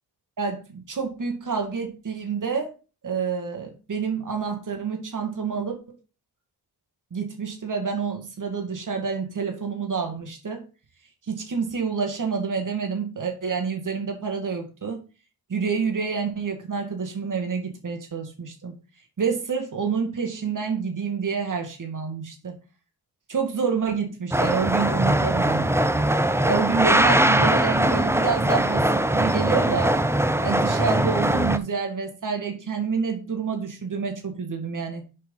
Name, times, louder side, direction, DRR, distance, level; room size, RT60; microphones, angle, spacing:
voice 1, 0.4-2.7 3.0-5.8 7.1-10.7 11.3-15.0 15.5-18.7 19.2-22.5 23.3-25.8 26.5-29.9 30.4-35.0, right 5 dB, 50° right, 3 dB, 2.2 m, -28 dB
sound 1, 24.3-31.6, right 1 dB, 5° right, 0.7 m, -21 dB
6.6 x 5.7 x 5.5 m, 0.33 s
cardioid pair, 55°, 40 cm